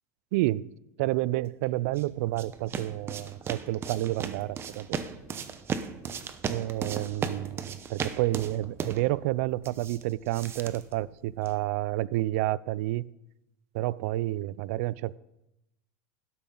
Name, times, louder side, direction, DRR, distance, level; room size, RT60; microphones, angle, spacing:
voice 1, 0.3-0.7 1.0-5.0 6.5-13.1 13.7-15.2, right 16 dB, 70° right, 22 dB, 0.4 m, -30 dB
sound 1, 1.6-11.6, right 6 dB, 30° right, 0.9 m, -37 dB
12.5 x 11.5 x 3.8 m, 0.86 s
supercardioid pair, 125°, 8 cm